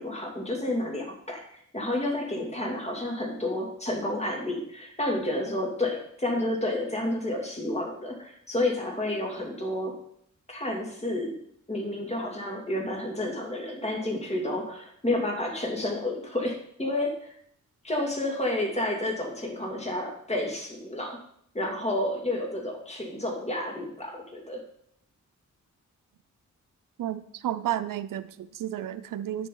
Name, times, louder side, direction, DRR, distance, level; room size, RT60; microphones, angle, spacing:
voice 1, 0.0-10.0 10.5-11.4 11.7-17.3 17.8-21.2 21.5-24.6, left 1 dB, 20° left, 1 dB, 2.5 m, -30 dB
voice 2, 27.0-29.5, right 11 dB, 85° right, 12 dB, 0.5 m, -32 dB
9.8 x 7.0 x 3.9 m, 0.68 s
cardioid pair, 60°, 32 cm